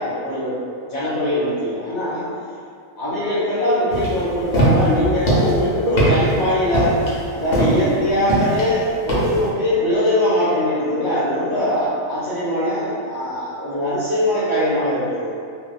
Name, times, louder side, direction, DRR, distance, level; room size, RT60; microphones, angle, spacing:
voice 1, 0.0-2.2 3.0-6.9 7.3-15.3, equal, 40° left, -13 dB, 0.7 m, -21 dB
sound 1, 3.9-9.5, right 1 dB, 75° left, 1.1 m, -21 dB
2.6 x 2.1 x 2.4 m, 2.3 s
omnidirectional pair, 1.5 m